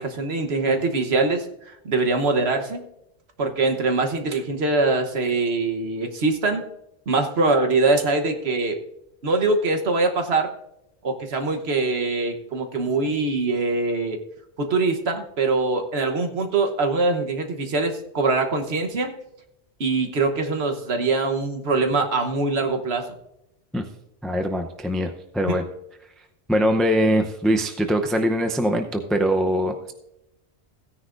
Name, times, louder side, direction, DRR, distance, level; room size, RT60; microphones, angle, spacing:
voice 1, 0.0-1.4 1.8-2.8 3.4-6.6 7.1-8.8 9.2-10.5 11.0-14.2 14.6-19.1 19.8-23.1 25.5-25.6, right 3 dB, 65° right, 5 dB, 1.3 m, -23 dB
voice 2, 24.2-25.6 26.5-29.9, equal, ahead, 5 dB, 0.4 m, -22 dB
16.0 x 9.9 x 2.5 m, 0.82 s
omnidirectional pair, 1.2 m